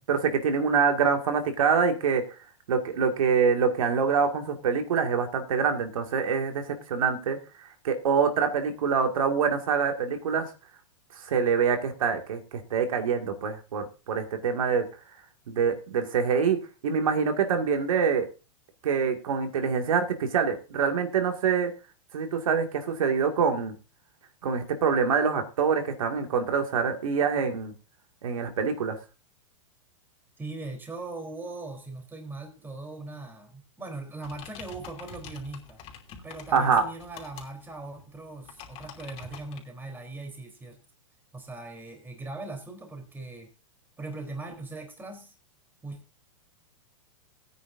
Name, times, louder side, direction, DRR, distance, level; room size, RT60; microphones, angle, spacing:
voice 1, 0.1-2.2 2.7-10.5 11.2-14.9 15.5-18.3 18.8-21.7 22.1-23.8 24.4-27.7 28.2-29.0 36.5-36.8, right 6 dB, 75° right, 5 dB, 2.3 m, -25 dB
voice 2, 30.4-35.8 36.2-40.8 41.3-43.5 44.0-45.3 45.8-46.0, right 2 dB, 10° right, 3 dB, 3.9 m, -40 dB
sound 1, 34.2-39.6, left 7 dB, 35° left, 3.0 m, -46 dB
19.0 x 9.4 x 2.7 m, 0.32 s
hypercardioid pair, 125°, 17 cm